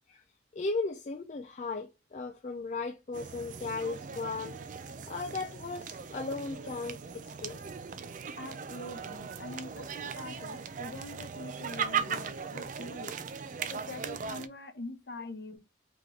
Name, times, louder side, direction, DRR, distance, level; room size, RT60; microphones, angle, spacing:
voice 1, 0.5-4.6 5.1-7.6 11.8-11.9, left 3 dB, 40° left, 0.4 m, -36 dB
sound 1, 3.1-14.5, right 6 dB, 45° right, 0.4 m, -38 dB
voice 2, 8.4-13.1 13.7-15.6, left 2 dB, 60° left, 0.8 m, -44 dB
3.1 x 3.0 x 3.8 m
head